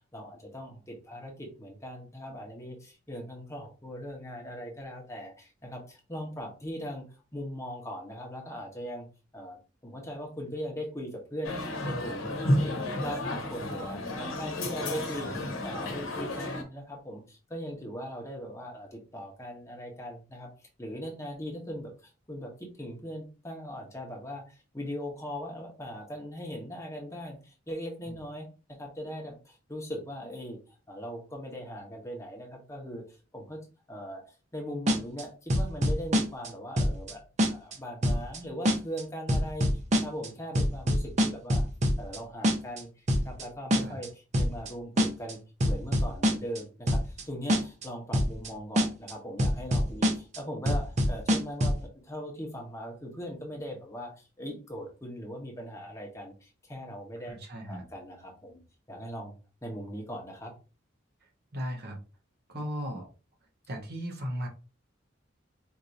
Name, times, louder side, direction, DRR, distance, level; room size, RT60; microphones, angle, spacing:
voice 1, 0.1-7.0 7.3-9.1 9.3-28.5 28.8-33.6 33.9-34.2 34.5-41.6 42.0-45.4 45.6-58.6 58.9-59.3 59.6-60.5, equal, 15° left, 1 dB, 0.9 m, -40 dB
sound 1, 11.4-16.6, left 1 dB, 85° left, 0.9 m, -32 dB
sound 2, 34.9-35.2 35.5-36.5 36.8-37.1 37.4-37.7 38.0-38.4 38.6-39.0 39.3-40.3 40.5-42.2 42.4-42.8 43.1-43.4 43.7-44.1 44.3-44.7 45.0-45.3 45.6-46.6 46.9-47.2 47.5-47.8 48.1-48.5 48.8-49.1 49.4-50.4 50.7-51.8, equal, 35° right, 0.6 m, -25 dB
voice 2, 57.3-57.8 61.5-62.0 62.5-63.1 63.7-64.5, equal, 55° right, 1 dB, 1.0 m, -36 dB
4.5 x 2.6 x 2.6 m, 0.34 s
head